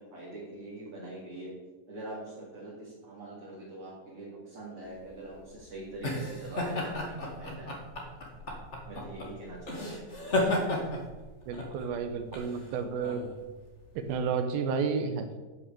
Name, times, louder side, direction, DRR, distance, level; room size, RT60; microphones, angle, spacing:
voice 1, 0.0-1.5 1.9-7.7 8.9-10.7, right 1 dB, 40° right, -6 dB, 2.9 m, -44 dB
sound 1, 5.0-14.2, left 1 dB, 35° left, 1.1 m, -34 dB
voice 2, 11.5-13.3 14.0-15.4, right 5 dB, 85° right, 8 dB, 2.7 m, -31 dB
12.0 x 6.1 x 6.8 m, 1.2 s
omnidirectional pair, 4.2 m